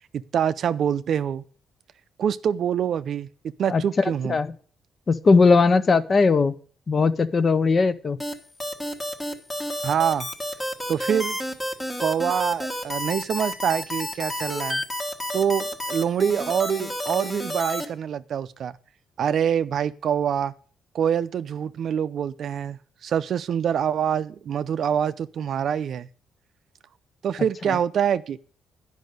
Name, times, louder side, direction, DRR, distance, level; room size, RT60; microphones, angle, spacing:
voice 1, 0.1-1.4 2.2-3.3 3.6-4.4 9.8-10.3 10.9-11.4 12.0-14.8 15.3-18.8 19.2-20.5 20.9-26.1 27.2-28.4, right 8 dB, 65° right, 14 dB, 0.5 m, -25 dB
voice 2, 3.7-4.5 5.1-6.5 6.9-8.2, left 4 dB, 40° left, 13 dB, 0.6 m, -19 dB
sound 1, 8.2-17.8, left 1 dB, 20° left, 1.4 m, -30 dB
9.3 x 5.4 x 6.5 m, 0.43 s
cardioid pair, 90°, 0 cm